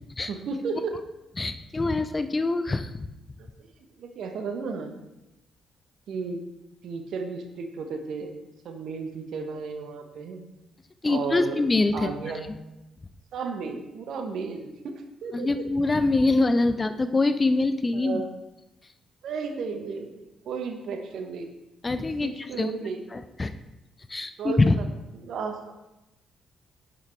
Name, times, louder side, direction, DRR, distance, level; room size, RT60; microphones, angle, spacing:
voice 1, 0.3-0.9 3.4-3.7 4.0-4.9 6.1-6.4 6.8-8.4 8.6-10.4 11.0-11.6 11.9-12.5 13.3-14.9 15.2-15.7 17.9-18.3 19.2-21.5 22.2-23.3 24.4-24.8 25.1-25.6, right 5 dB, 55° right, 6 dB, 1.1 m, -34 dB
voice 2, 1.4-3.1 11.0-12.1 15.3-18.2 21.8-22.3 22.6-22.7 23.1-23.5 24.1-24.8, left 2 dB, 25° left, 11 dB, 0.6 m, -24 dB
10.5 x 7.7 x 3.5 m, 0.95 s
figure-of-eight pair, 40°, 0 cm